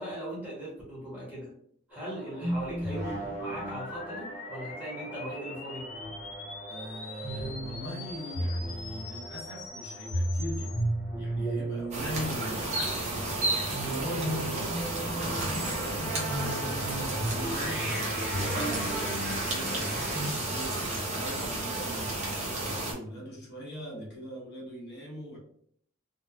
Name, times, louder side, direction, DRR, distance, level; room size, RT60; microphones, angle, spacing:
voice 1, 0.0-1.5 1.9-5.8, equal, 10° right, -6 dB, 0.9 m, -39 dB
sound 1, 1.9-20.3, right 1 dB, 15° left, 1.0 m, -36 dB
sound 2, 3.4-10.8, left 3 dB, 35° left, 0.3 m, -44 dB
voice 2, 6.7-10.8 11.2-12.8 13.7-17.9 18.5-25.4, left 1 dB, 50° left, -3 dB, 0.9 m, -40 dB
sound 3, 11.9-22.9, right 2 dB, 35° right, 0.6 m, -32 dB
2.9 x 2.2 x 2.3 m, 0.64 s
head